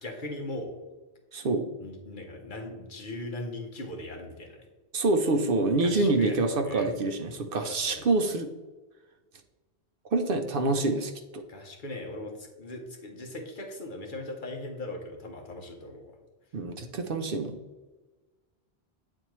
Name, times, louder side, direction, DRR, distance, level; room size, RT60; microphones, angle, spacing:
voice 1, 0.0-0.8 1.8-4.6 5.8-6.9 7.6-8.0 11.5-16.2, left 1 dB, 55° left, 2 dB, 1.1 m, -39 dB
voice 2, 1.3-1.7 4.9-8.5 10.1-11.4 16.5-17.6, right 2 dB, 65° right, 7 dB, 0.8 m, -26 dB
8.4 x 4.3 x 3.0 m, 1.2 s
omnidirectional pair, 1.1 m